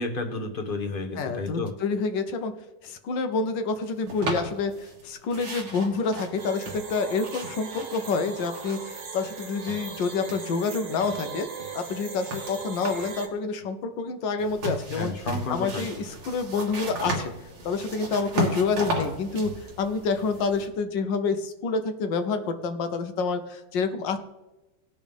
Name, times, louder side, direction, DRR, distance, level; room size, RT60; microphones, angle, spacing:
voice 1, 0.0-1.7 14.9-15.8, left 3 dB, 35° left, 4 dB, 1.0 m, -31 dB
voice 2, 1.2-2.5 2.8-11.5 11.7-15.1 15.5-17.3 17.6-24.2, left 4 dB, 85° left, 8 dB, 1.6 m, -28 dB
sound 1, 4.1-5.0 5.3-9.0 9.3-10.7 11.0-13.2 14.4-20.7, right 1 dB, 90° right, 2.6 m, -35 dB
sound 2, 6.4-13.3, right 5 dB, 70° right, 2.2 m, -39 dB
18.5 x 6.2 x 3.5 m, 1.1 s
omnidirectional pair, 1.9 m